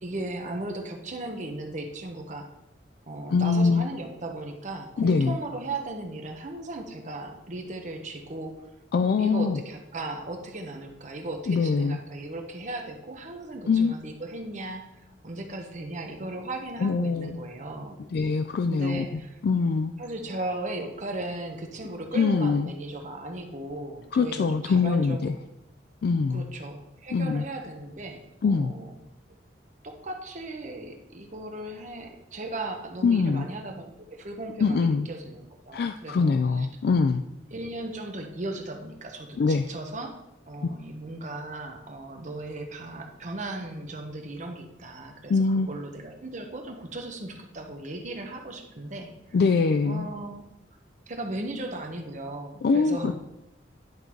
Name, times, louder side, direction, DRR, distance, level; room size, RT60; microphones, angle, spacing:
voice 1, 0.0-2.5 3.1-8.6 9.2-18.0 18.7-19.4 20.0-25.2 26.3-28.9 29.8-36.7 37.5-40.2 40.5-49.1 49.8-50.4 51.1-53.2, right 2 dB, 40° right, 3 dB, 1.0 m, -37 dB
voice 2, 3.3-3.9 5.0-5.4 8.9-9.6 11.5-12.0 13.7-13.9 16.8-17.4 18.1-19.1 19.4-19.9 22.1-22.7 24.1-25.3 26.0-26.5 27.1-27.4 28.4-28.7 33.0-33.5 34.6-35.1 35.7-37.2 39.4-39.7 45.3-45.7 49.3-50.1 52.6-53.2, left 4 dB, 55° left, 8 dB, 0.3 m, -23 dB
10.5 x 3.9 x 4.5 m, 0.92 s
head